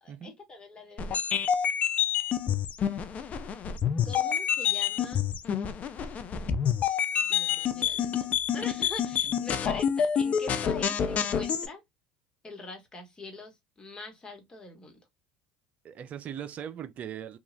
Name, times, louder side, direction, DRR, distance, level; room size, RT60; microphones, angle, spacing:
voice 1, 0.0-1.6 4.0-5.3 7.3-8.3 8.5-11.8 12.4-15.0, left 2 dB, 25° left, 1.3 m, -44 dB
sound 1, 1.0-11.7, left 8 dB, 40° left, 0.5 m, -28 dB
voice 2, 15.8-17.4, right 9 dB, 45° right, 0.5 m, -40 dB
3.0 x 2.4 x 2.6 m
hypercardioid pair, 85°, 4 cm